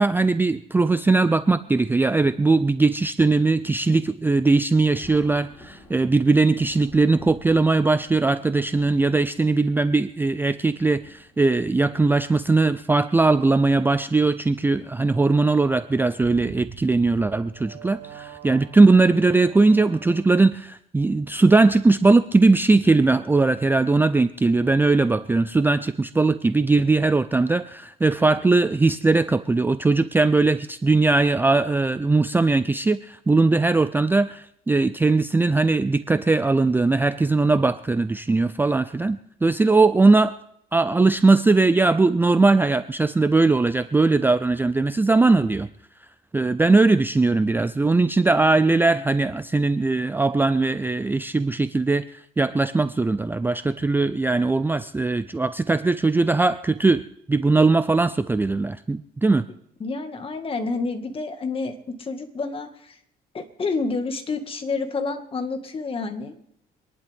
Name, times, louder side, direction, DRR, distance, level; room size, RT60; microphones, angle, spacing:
voice 1, 0.0-40.3 40.7-45.7 46.3-59.4, right 3 dB, 10° right, 12 dB, 0.4 m, -20 dB
Thunder, 4.9-11.9 12.9-13.0 14.5-14.8 15.1-15.2 17.2-17.4 18.1-18.4, left 1 dB, 10° left, 5.2 m, -50 dB
sound 1, 16.2-20.6, right 8 dB, 70° right, 4.0 m, -44 dB
voice 2, 59.8-63.0 63.3-66.3, left 3 dB, 35° left, 6 dB, 1.9 m, -29 dB
25.5 x 11.0 x 3.6 m, 0.71 s
cardioid pair, 110°, 17 cm